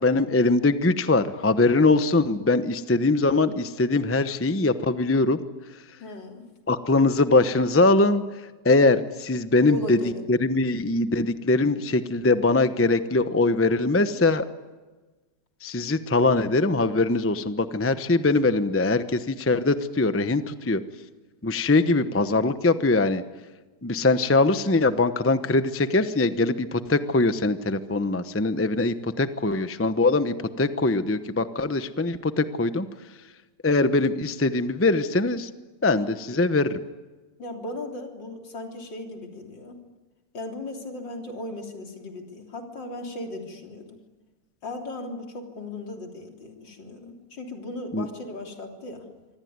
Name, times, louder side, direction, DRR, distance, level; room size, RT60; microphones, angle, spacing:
voice 1, 0.0-5.4 6.7-10.0 10.3-14.5 15.6-20.8 21.4-23.2 23.8-32.9 33.6-35.5 35.8-36.8 47.9-48.1, left 3 dB, 15° left, 11 dB, 0.6 m, -22 dB
voice 2, 6.0-6.5 9.6-10.3 37.4-39.8 40.3-43.9 44.6-49.1, left 1 dB, 75° left, 2 dB, 4.1 m, -37 dB
25.0 x 25.0 x 9.5 m, 1.2 s
omnidirectional pair, 2.0 m